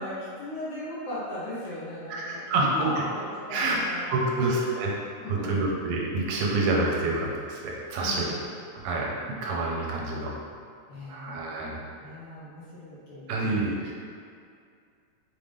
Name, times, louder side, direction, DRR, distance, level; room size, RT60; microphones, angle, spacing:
voice 1, 0.0-4.5 5.2-5.6 8.0-8.4 10.9-13.6, left 1 dB, 65° left, -9 dB, 1.8 m, -38 dB
voice 2, 2.1-3.0 3.5-4.9 5.3-8.3 8.7-10.3 11.1-11.8 13.3-13.9, right 2 dB, 80° right, -2 dB, 2.0 m, -27 dB
5.4 x 2.5 x 3.3 m, 2.3 s
omnidirectional pair, 3.3 m